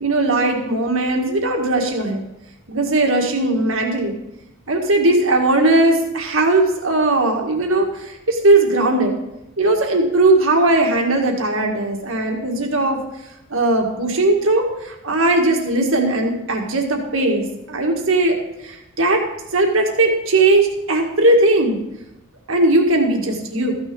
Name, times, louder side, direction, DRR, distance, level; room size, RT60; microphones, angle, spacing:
voice 1, 0.0-2.2 2.7-4.1 4.7-9.1 9.6-13.0 13.5-18.4 18.6-19.3 19.5-21.8 22.5-23.7, right 2 dB, 70° right, 2 dB, 1.8 m, -18 dB
14.0 x 6.4 x 5.3 m, 0.90 s
head